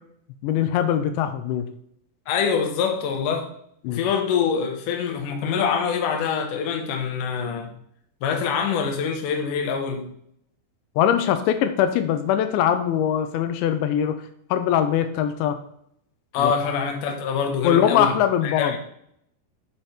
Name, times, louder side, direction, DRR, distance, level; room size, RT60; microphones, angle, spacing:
voice 1, 0.4-1.7 3.8-4.0 11.0-14.2 14.5-15.6 16.4-16.5 17.6-18.8, left 9 dB, 85° left, 9 dB, 3.0 m, -22 dB
voice 2, 2.3-3.5 3.9-7.7 8.2-10.1 16.3-18.2 18.4-18.8, left 6 dB, 70° left, 3 dB, 2.0 m, -25 dB
8.2 x 6.0 x 4.4 m, 0.70 s
omnidirectional pair, 5.2 m